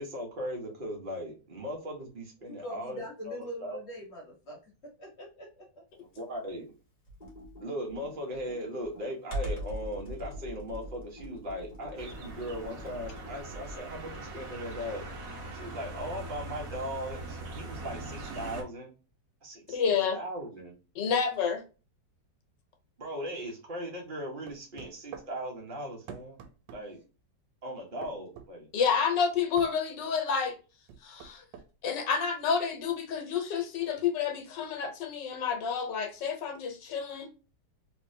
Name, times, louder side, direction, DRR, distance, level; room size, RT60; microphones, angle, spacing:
voice 1, 0.0-3.8 6.1-6.7 7.6-15.0 15.5-18.9 19.4-20.7 23.0-26.4 26.7-27.0 27.6-28.7, equal, 35° right, -1 dB, 1.2 m, -38 dB
voice 2, 2.5-5.8, equal, 40° left, -3 dB, 1.3 m, -43 dB
Computer keyboard, 7.1-13.9, right 1 dB, 25° left, 1.2 m, -41 dB
sound 1, 12.0-18.6, right 2 dB, 60° right, 1.1 m, -41 dB
voice 3, 19.7-20.2 21.0-21.6 28.7-30.6 31.0-31.4 31.8-37.3, left 6 dB, 75° left, 5 dB, 1.5 m, -29 dB
sound 2, 24.5-25.3 26.1-26.8 28.0-28.5 29.6-29.8 30.9-31.7, right 8 dB, 85° right, 1.3 m, -45 dB
3.3 x 3.0 x 2.6 m, 0.33 s
omnidirectional pair, 1.9 m